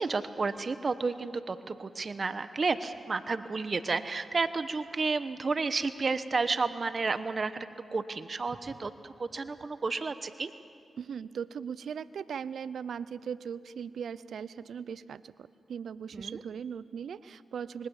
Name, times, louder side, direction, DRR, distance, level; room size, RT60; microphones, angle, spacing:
voice 1, 0.0-10.5 16.1-16.4, right 4 dB, 50° right, 12 dB, 1.1 m, -31 dB
voice 2, 11.0-17.9, right 7 dB, 80° right, 17 dB, 0.6 m, -39 dB
26.0 x 22.5 x 7.3 m, 2.3 s
supercardioid pair, 45°, 0 cm